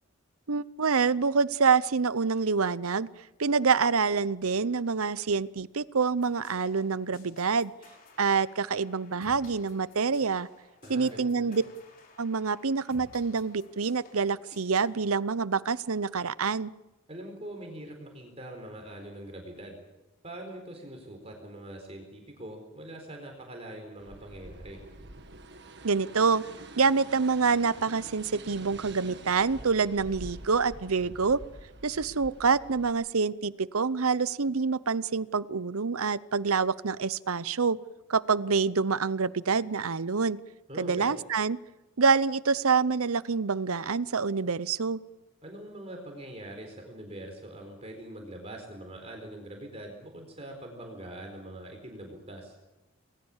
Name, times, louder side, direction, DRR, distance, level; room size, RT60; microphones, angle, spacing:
voice 1, 0.5-3.1 3.4-7.7 8.2-10.5 10.9-11.6 12.2-16.7 25.8-26.4 26.8-31.4 31.8-37.8 38.1-40.4 40.8-41.6 42.0-45.0, right 5 dB, 85° right, 18 dB, 0.8 m, -26 dB
sound 1, 6.2-15.0, left 2 dB, 40° left, 4.6 m, -55 dB
voice 2, 10.8-11.6 17.1-19.8 20.2-24.8 40.7-41.1 45.4-52.6, right 1 dB, 30° right, 3 dB, 4.1 m, -43 dB
sound 2, 24.0-32.9, right 2 dB, 50° right, 1.9 m, -46 dB
28.0 x 20.5 x 7.3 m, 1.0 s
head